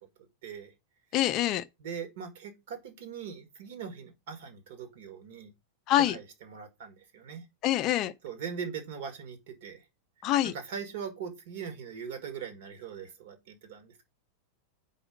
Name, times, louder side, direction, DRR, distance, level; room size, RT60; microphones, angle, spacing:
voice 1, 1.1-1.6 5.9-6.1 7.6-8.1 10.2-10.5, left 13 dB, 40° left, 0.4 m, -25 dB
voice 2, 1.8-5.5 6.0-7.4 8.2-9.8 10.4-14.0, right 7 dB, 55° right, 1.5 m, -41 dB
4.9 x 4.2 x 5.0 m
figure-of-eight pair, 90°, 0 cm